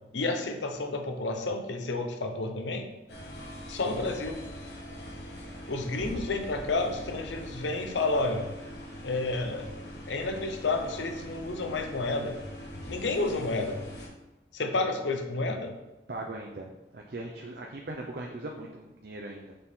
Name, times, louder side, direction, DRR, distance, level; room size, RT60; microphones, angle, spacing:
voice 1, 0.1-2.9 3.7-4.4 5.7-8.5 9.0-9.7 10.1-12.4 12.9-13.8 14.5-15.7, left 3 dB, 85° left, 5 dB, 0.7 m, -30 dB
sound 1, 3.1-14.1, left 1 dB, 65° left, 1.3 m, -42 dB
voice 2, 16.1-19.5, right 2 dB, 60° right, 0 dB, 0.6 m, -39 dB
6.7 x 4.1 x 3.7 m, 0.99 s
head